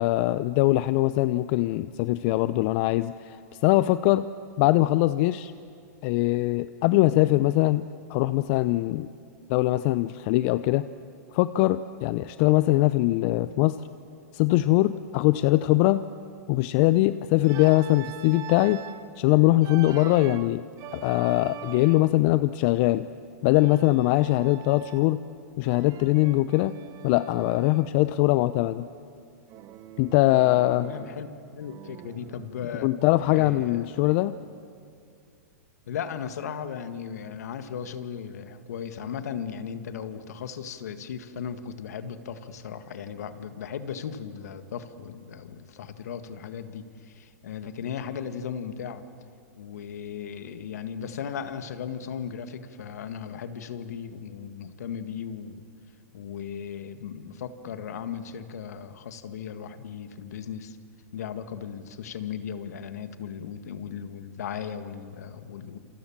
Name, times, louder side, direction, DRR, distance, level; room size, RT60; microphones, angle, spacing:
voice 1, 0.0-3.4 3.6-4.3 4.6-5.5 6.0-7.8 8.1-9.1 9.5-10.9 11.3-13.8 14.3-16.0 16.5-18.8 19.2-20.6 20.9-23.1 23.4-25.2 25.6-26.8 27.0-28.9 30.0-30.9 32.8-34.4, left 17 dB, 50° left, 14 dB, 0.7 m, -22 dB
Organ, 17.4-19.1 19.6-22.3 23.5-25.3 25.6-27.9 29.5-31.3 31.6-34.3, right 13 dB, 40° right, 1.3 m, -44 dB
voice 2, 30.8-31.3 31.5-32.9 33.3-34.2 35.9-49.0 49.6-55.7 56.1-60.8 61.1-65.8, left 7 dB, 70° left, 9 dB, 1.9 m, -36 dB
28.5 x 27.5 x 7.4 m, 2.4 s
hypercardioid pair, 110°, 9 cm